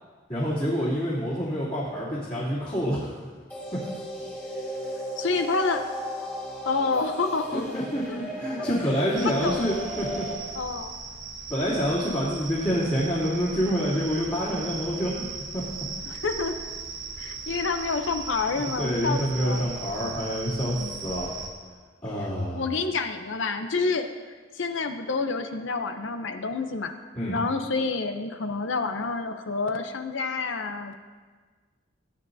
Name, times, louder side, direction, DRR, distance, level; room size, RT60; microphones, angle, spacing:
voice 1, 0.3-3.1 3.7-3.8 7.5-10.5 11.5-15.3 15.5-15.6 18.8-21.3 22.0-22.6 27.1-27.4, equal, 30° left, -11 dB, 3.0 m, -27 dB
sound 1, 3.5-10.3, equal, 10° left, 2.4 m, -35 dB
voice 2, 5.2-5.8 6.6-7.8 8.1-8.2 8.6-8.7 9.2-9.8 10.5-11.0 16.1-16.8 17.2-19.7 20.6-21.0 22.5-24.1 24.5-27.0 27.3-30.9, left 4 dB, 65° left, 7 dB, 0.7 m, -28 dB
sound 2, 9.2-21.5, right 4 dB, 65° right, 1.2 m, -38 dB
17.5 x 10.0 x 2.7 m, 1.5 s
head